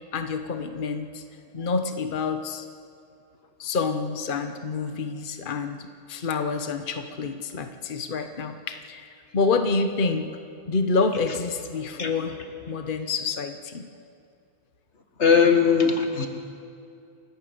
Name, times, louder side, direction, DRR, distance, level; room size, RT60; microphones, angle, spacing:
voice 1, 0.1-1.2 1.5-2.7 3.6-10.3 10.7-12.4 12.6-13.9, left 4 dB, 50° left, 7 dB, 1.2 m, -28 dB
voice 2, 15.2-16.3, left 6 dB, 85° left, 5 dB, 2.0 m, -19 dB
28.5 x 12.5 x 7.9 m, 2.5 s
omnidirectional pair, 1.1 m